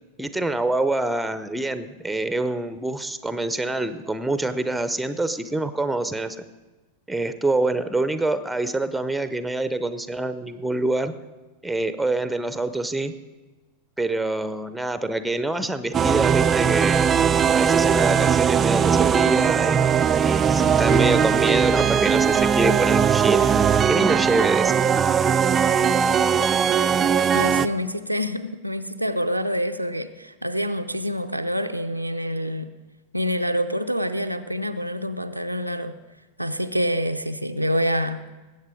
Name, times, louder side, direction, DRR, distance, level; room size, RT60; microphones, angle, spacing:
voice 1, 0.2-6.4 7.1-11.1 11.6-13.1 14.0-17.1 17.5-23.5 23.9-24.7, right 2 dB, 5° right, 12 dB, 0.7 m, -25 dB
sound 1, 15.9-27.7, right 7 dB, 25° right, 0.4 m, -19 dB
voice 2, 27.3-32.7 33.1-35.9 36.4-38.2, equal, 90° right, 7 dB, 0.5 m, -26 dB
19.5 x 8.2 x 4.9 m, 1.2 s
figure-of-eight pair, 90°, 0 cm